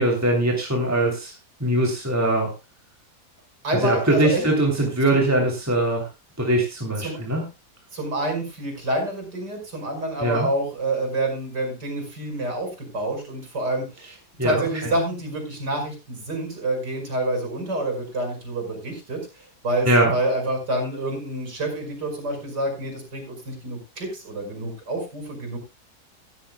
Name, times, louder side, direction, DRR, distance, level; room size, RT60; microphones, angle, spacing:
voice 1, 0.0-1.3 1.6-2.5 3.7-6.1 6.4-7.4 10.2-10.5 14.4-14.6 19.8-20.1, right 1 dB, 10° right, 0 dB, 3.1 m, -21 dB
voice 2, 3.6-4.5 5.1-5.2 7.0-7.2 7.9-14.2 14.4-19.2 19.6-25.6, right 1 dB, 90° right, 4 dB, 5.9 m, -28 dB
17.5 x 12.5 x 2.3 m, 0.28 s
omnidirectional pair, 1.8 m